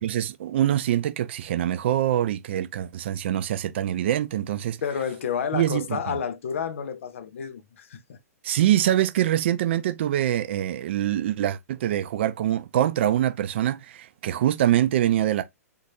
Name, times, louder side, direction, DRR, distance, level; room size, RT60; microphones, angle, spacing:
voice 1, 0.0-4.8 5.5-6.0 8.4-15.4, right 12 dB, 45° right, 0.5 m, -24 dB
voice 2, 4.8-8.2, left 7 dB, 55° left, 0.5 m, -30 dB
3.6 x 2.5 x 2.9 m
figure-of-eight pair, 110°, 9 cm